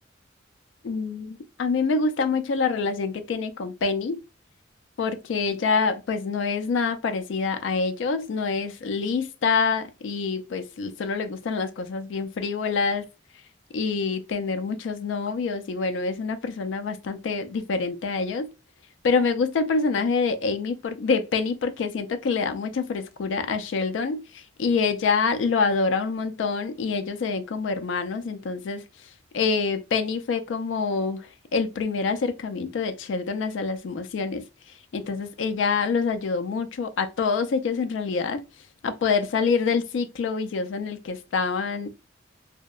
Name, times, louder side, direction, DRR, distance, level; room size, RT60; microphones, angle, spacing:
voice 1, 0.8-4.2 5.0-13.0 13.7-18.5 19.0-24.2 24.6-28.8 29.3-34.4 34.9-38.4 38.8-41.9, left 4 dB, 75° left, 0.3 m, -26 dB
2.7 x 2.1 x 2.3 m
head